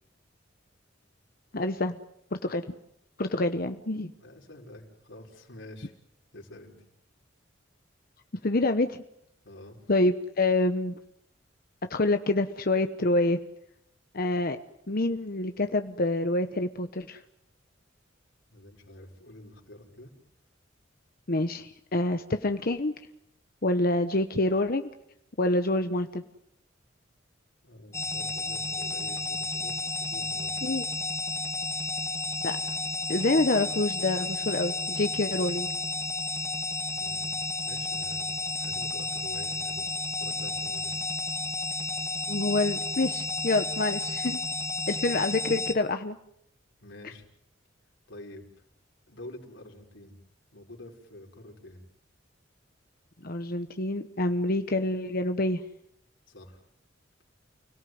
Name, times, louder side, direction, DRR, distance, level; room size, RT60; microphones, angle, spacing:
voice 1, 1.5-2.0 2.4-2.6 3.2-4.1 8.4-9.0 9.9-11.0 11.9-13.4 14.1-14.6 14.9-17.2 21.3-22.9 23.6-24.9 25.4-26.2 30.6-30.8 32.4-32.5 33.1-35.7 42.3-44.4 44.9-46.2 53.2-55.6, left 2 dB, 50° left, 8 dB, 1.1 m, -27 dB
voice 2, 4.2-5.9 6.3-6.8 9.4-9.8 18.5-20.1 27.6-30.7 37.0-37.3 37.6-41.1 46.8-47.3 48.1-48.6 49.1-50.2 50.5-51.8 56.3-56.6, left 1 dB, 75° left, 1 dB, 5.3 m, -48 dB
sound 1, 27.9-45.7, left 2 dB, 15° left, 2.0 m, -32 dB
30.0 x 18.0 x 9.5 m, 0.77 s
head